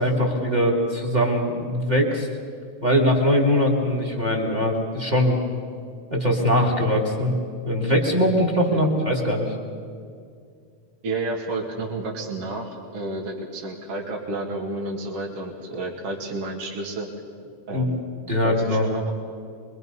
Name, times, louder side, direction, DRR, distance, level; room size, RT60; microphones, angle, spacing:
voice 1, 0.0-2.3 2.8-5.4 6.1-7.3 7.6-9.5 17.7-17.9 18.3-18.9, equal, 15° right, 1 dB, 2.8 m, -21 dB
voice 2, 11.0-17.1 17.7-18.0 18.4-19.1, right 2 dB, 50° right, -2 dB, 2.9 m, -31 dB
25.5 x 23.5 x 5.5 m, 2.3 s
omnidirectional pair, 3.7 m